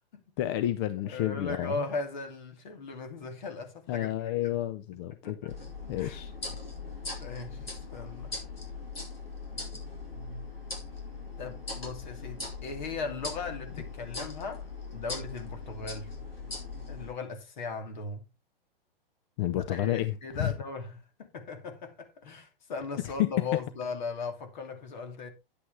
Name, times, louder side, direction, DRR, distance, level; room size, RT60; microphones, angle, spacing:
voice 1, 0.4-1.8 3.9-5.5 5.9-6.3 19.4-20.5 23.0-23.1, left 12 dB, 25° left, 0.6 m, -31 dB
voice 2, 1.0-4.1 4.4-4.6 5.1-5.5 6.0-6.2 7.2-8.4 11.4-16.1 16.9-18.2 19.7-25.3, left 4 dB, 50° left, 2.7 m, -38 dB
sound 1, 5.5-17.1, left 3 dB, 75° left, 4.9 m, -40 dB
10.0 x 8.5 x 3.4 m
figure-of-eight pair, 115°, 30 cm